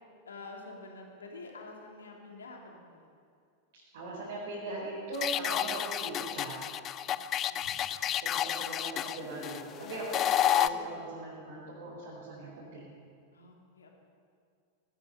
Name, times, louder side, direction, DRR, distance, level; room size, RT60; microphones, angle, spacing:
voice 1, 0.2-3.1 7.0-8.3 9.8-10.0 13.3-13.9, left 3 dB, 70° left, 0 dB, 2.7 m, -49 dB
voice 2, 3.9-6.6 7.6-7.7 8.2-10.2 10.5-12.9, right 2 dB, 55° right, -6 dB, 4.4 m, -40 dB
sound 1, 5.1-10.7, left 11 dB, 30° left, 0.5 m, -30 dB
18.5 x 12.0 x 5.7 m, 2.3 s
figure-of-eight pair, 90°, 0 cm